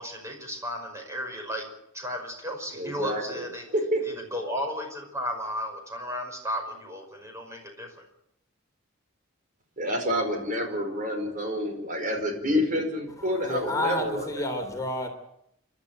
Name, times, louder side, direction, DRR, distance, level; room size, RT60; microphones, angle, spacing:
voice 1, 0.0-1.7 1.9-3.7 4.0-8.0, equal, 15° right, 3 dB, 5.4 m, -34 dB
voice 2, 2.8-3.4 3.7-4.0 9.8-14.4, equal, 40° right, 4 dB, 5.0 m, -28 dB
voice 3, 13.2-15.1, left 1 dB, 15° left, 3 dB, 3.3 m, -30 dB
29.0 x 12.0 x 9.1 m, 0.77 s
head